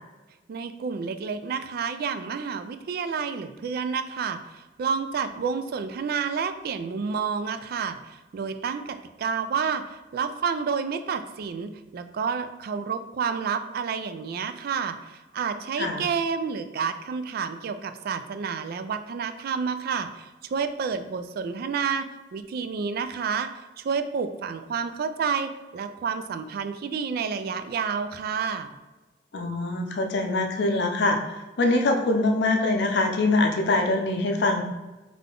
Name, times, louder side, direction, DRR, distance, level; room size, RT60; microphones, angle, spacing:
voice 1, 0.5-28.7, right 6 dB, 55° right, 10 dB, 0.3 m, -30 dB
voice 2, 29.3-34.6, left 2 dB, 65° left, 4 dB, 0.5 m, -24 dB
3.6 x 3.3 x 3.7 m, 1.2 s
head